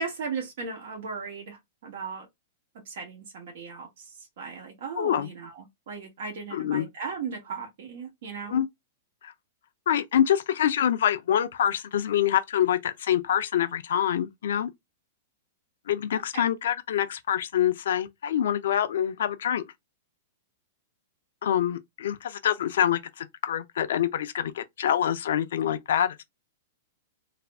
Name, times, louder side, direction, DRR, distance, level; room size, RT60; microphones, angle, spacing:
voice 1, 0.0-2.3 2.8-8.6 16.1-16.4, right 5 dB, 65° right, 0.9 m, -37 dB
voice 2, 5.0-5.3 6.5-6.9 8.5-8.7 9.2-9.3 9.9-14.7 15.9-19.6 21.4-26.2, left 10 dB, 75° left, 0.4 m, -26 dB
2.4 x 2.0 x 3.3 m
hypercardioid pair, 130°, 0 cm